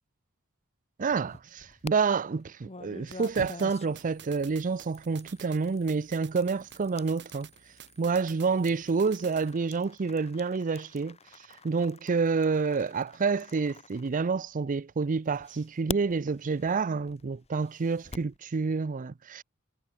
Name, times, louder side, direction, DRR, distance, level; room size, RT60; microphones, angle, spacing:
sound 1, 1.0-1.9 2.6-14.7 15.3-18.4, left 3 dB, 30° left, 1.7 m, -45 dB
voice 1, 1.0-7.5 8.0-11.2 11.6-19.4, right 4 dB, 40° right, 0.5 m, -28 dB
sound 2, 3.1-9.5, right 9 dB, 55° right, 7.8 m, -51 dB
head